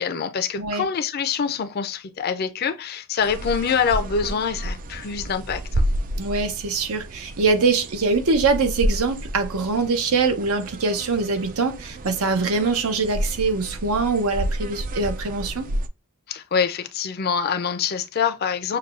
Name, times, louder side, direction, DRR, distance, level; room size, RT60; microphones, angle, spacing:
voice 1, 0.0-5.8 16.3-18.8, left 6 dB, 45° left, 0.4 m, -25 dB
sound 1, 3.2-15.9, right 1 dB, 40° right, 0.3 m, -30 dB
voice 2, 6.2-15.7, right 4 dB, 80° right, 0.7 m, -23 dB
6.5 x 2.2 x 2.4 m
head